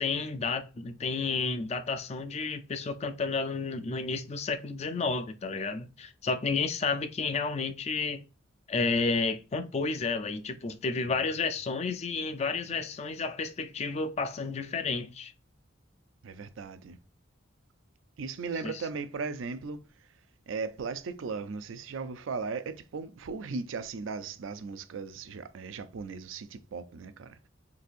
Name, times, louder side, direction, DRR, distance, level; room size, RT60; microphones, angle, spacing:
voice 1, 0.0-8.2 8.7-15.3 18.6-18.7, left 4 dB, 35° left, 0.3 m, -31 dB
voice 2, 16.2-17.0 18.2-19.8 20.5-27.4, right 4 dB, 80° right, 0.4 m, -37 dB
4.0 x 2.6 x 2.4 m
head